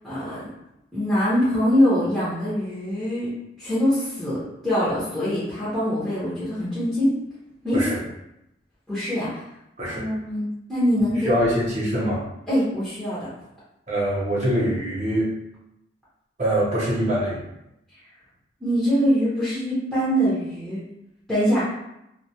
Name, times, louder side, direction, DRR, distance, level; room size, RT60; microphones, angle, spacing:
voice 1, 0.0-0.4 0.9-3.3 3.6-7.1 7.6-7.9 8.9-9.4 9.9-11.3 12.5-13.3 18.6-20.8 21.3-21.8, equal, ahead, -12 dB, 0.6 m, -23 dB
voice 2, 11.2-12.2 13.9-15.3 16.4-17.4, equal, 40° right, -6 dB, 0.7 m, -23 dB
2.2 x 2.1 x 2.7 m, 0.85 s
head